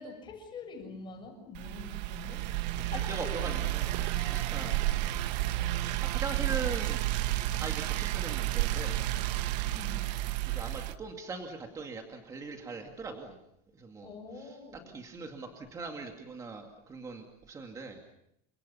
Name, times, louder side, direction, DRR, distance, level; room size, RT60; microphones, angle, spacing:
voice 1, 0.0-2.4 2.9-3.6 3.8-3.9 4.1-5.1 9.7-10.2 14.0-14.9, left 4 dB, 20° left, 4 dB, 7.1 m, -45 dB
sound 1, 1.5-10.9, right 15 dB, 80° right, 1.4 m, -31 dB
voice 2, 2.8-3.9 4.3-4.7 6.0-7.0 7.5-9.0 10.5-13.4 13.7-18.0, right 4 dB, 15° right, 3 dB, 2.4 m, -41 dB
30.0 x 26.5 x 5.7 m, 0.77 s
cardioid pair, 175°, 21 cm